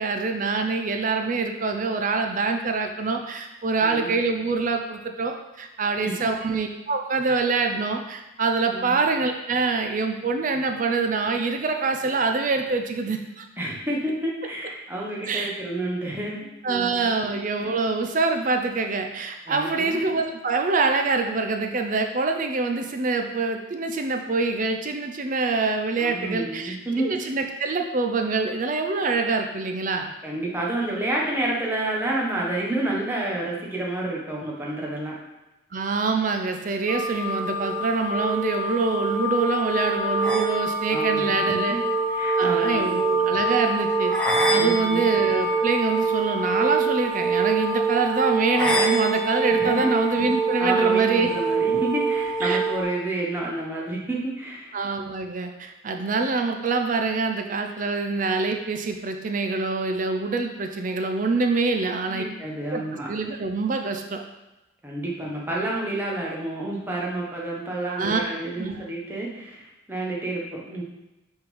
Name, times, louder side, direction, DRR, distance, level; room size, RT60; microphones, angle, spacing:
voice 1, 0.0-13.5 15.3-15.5 16.6-30.1 35.7-41.8 42.4-44.1 44.5-51.3 52.4-52.6 54.7-62.2 62.7-64.2 67.9-68.2 68.6-68.8, right 3 dB, 40° right, 5 dB, 0.5 m, -25 dB
voice 2, 3.8-4.1 6.0-6.3 8.7-9.0 13.6-16.4 16.7-17.2 19.5-20.0 26.0-27.3 30.2-35.2 40.9-41.8 42.1-43.0 44.5-45.0 49.5-49.9 50.6-54.7 61.8-63.1 64.8-70.8, right 1 dB, 10° right, -4 dB, 1.0 m, -29 dB
sound 1, 36.9-52.8, right 3 dB, 5° left, 0.7 m, -24 dB
5.6 x 3.8 x 5.4 m, 0.99 s
head